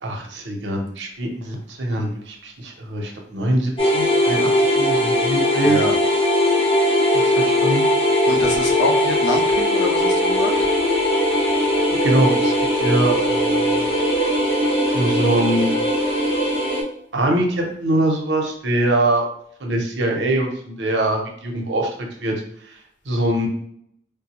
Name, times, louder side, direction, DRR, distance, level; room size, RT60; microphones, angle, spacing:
voice 1, 0.0-5.8 7.1-7.8 12.0-12.5 12.8-13.8 14.9-15.7 17.1-19.3 19.6-21.9 22.2-22.3 23.1-23.5, right 1 dB, 80° right, 1 dB, 0.7 m, -23 dB
sound 1, 3.8-16.8, left 1 dB, 30° left, 0.8 m, -19 dB
voice 2, 8.3-10.5, left 1 dB, 85° left, 2 dB, 0.6 m, -25 dB
3.5 x 2.2 x 2.9 m, 0.69 s
head